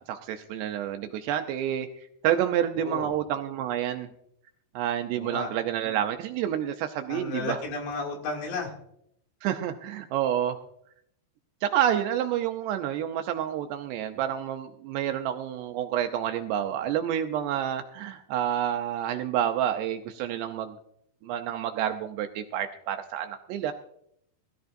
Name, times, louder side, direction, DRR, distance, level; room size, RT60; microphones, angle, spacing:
voice 1, 0.0-4.1 4.8-7.6 9.4-10.6 11.6-20.8 21.2-23.7, right 10 dB, 80° right, 6 dB, 2.6 m, -29 dB
voice 2, 2.8-3.1 5.2-5.5 7.1-8.7, left 4 dB, 70° left, 0 dB, 4.8 m, -33 dB
20.5 x 13.5 x 2.6 m, 0.72 s
omnidirectional pair, 5.3 m